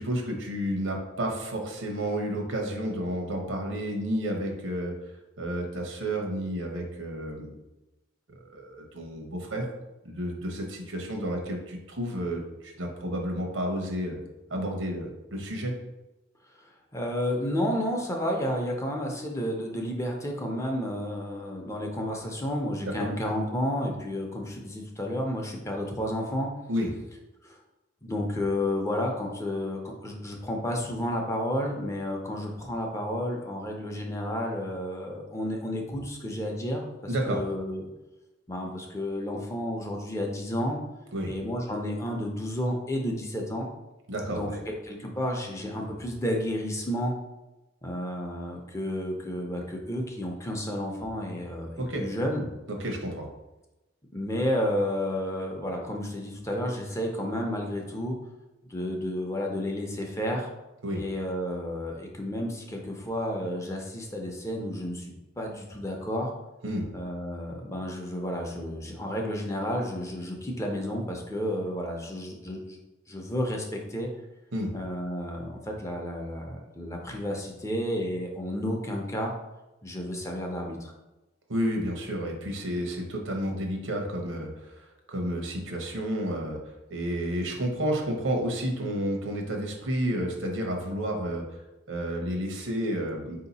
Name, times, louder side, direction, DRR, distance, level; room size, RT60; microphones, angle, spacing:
voice 1, 0.0-4.9 5.4-7.5 8.5-9.7 10.0-14.2 14.5-15.7 22.8-22.9 26.7-26.9 37.1-37.4 41.1-41.3 44.1-44.6 51.8-52.0 52.7-53.3 60.8-61.0 66.6-66.9 74.5-74.7 81.5-91.6 91.9-93.5, equal, 90° right, 2 dB, 1.0 m, -31 dB
voice 2, 16.9-26.5 27.4-27.6 28.0-37.9 38.5-40.8 41.2-43.7 44.2-47.1 47.8-52.5 54.1-58.2 58.7-60.5 60.9-66.3 66.9-72.8 73.1-74.1 74.7-79.3 79.8-80.9, left 1 dB, 15° left, 1 dB, 0.6 m, -31 dB
4.4 x 2.8 x 4.1 m, 1.0 s
head